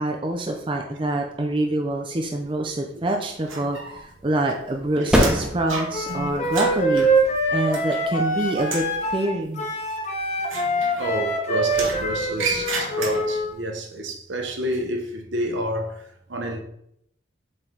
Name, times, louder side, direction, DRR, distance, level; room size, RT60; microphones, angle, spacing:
voice 1, 0.0-7.1 7.5-8.9 9.1-9.7, right 1 dB, 25° right, 0.5 m, -26 dB
sound 1, 2.6-9.8, equal, 5° right, 0.9 m, -29 dB
sound 2, 3.5-4.2 4.5-8.3 8.6-9.0 10.4-11.3 11.7-13.5, right 4 dB, 85° right, 1.3 m, -32 dB
Wind instrument woodwind instrument, 5.9-13.5, right 1 dB, 35° left, 0.9 m, -24 dB
voice 2, 11.0-16.6, right 1 dB, 70° right, 1.0 m, -29 dB
7.4 x 3.9 x 3.3 m
head